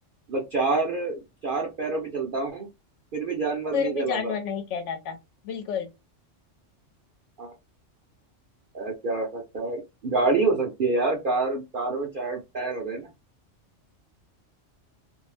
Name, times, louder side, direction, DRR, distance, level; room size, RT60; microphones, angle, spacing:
voice 1, 0.3-2.7 3.1-4.3 7.4-7.5 8.7-13.1, right 3 dB, 50° right, 0.7 m, -27 dB
voice 2, 3.7-5.2 5.4-5.9, left 7 dB, 75° left, 1.0 m, -30 dB
2.6 x 2.0 x 3.1 m
omnidirectional pair, 1.3 m